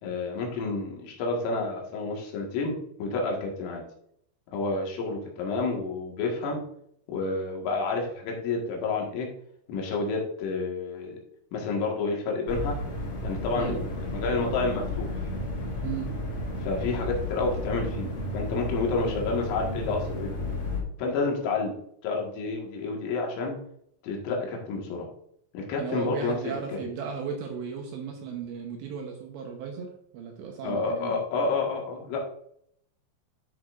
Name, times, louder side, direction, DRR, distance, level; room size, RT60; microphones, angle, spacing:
voice 1, 0.0-3.8 4.5-6.6 7.1-9.3 9.7-11.1 11.5-12.8 13.2-15.3 16.6-20.4 21.0-21.7 22.0-23.6 24.0-25.1 25.5-26.8 30.6-32.3, left 3 dB, 75° left, -1 dB, 4.2 m, -29 dB
sound 1, 12.5-20.8, left 1 dB, 30° left, 4.5 m, -33 dB
voice 2, 25.8-31.2, right 6 dB, 75° right, 2 dB, 2.8 m, -35 dB
12.0 x 6.8 x 2.5 m, 0.69 s
omnidirectional pair, 5.9 m